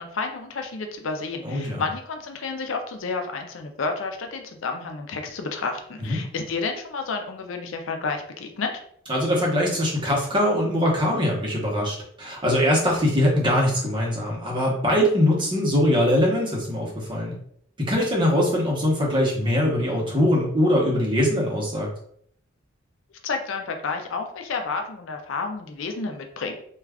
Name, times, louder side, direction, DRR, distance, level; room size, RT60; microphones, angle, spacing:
voice 1, 0.0-8.8 23.2-26.5, left 4 dB, 80° left, 5 dB, 0.5 m, -30 dB
voice 2, 1.4-1.8 6.0-6.2 9.1-17.3 17.8-21.9, left 1 dB, 25° right, -3 dB, 0.8 m, -22 dB
2.3 x 2.3 x 3.4 m, 0.65 s
head